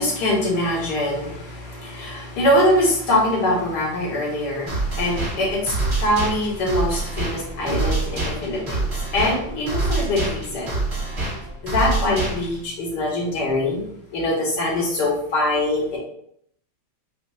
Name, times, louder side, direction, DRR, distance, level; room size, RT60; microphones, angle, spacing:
voice 1, 0.0-10.8 11.6-13.8 14.1-16.0, left 1 dB, 60° left, -3 dB, 1.6 m, -23 dB
sound 1, 4.7-12.7, right 2 dB, 35° right, 1.3 m, -26 dB
5.2 x 2.2 x 2.3 m, 0.68 s
omnidirectional pair, 2.2 m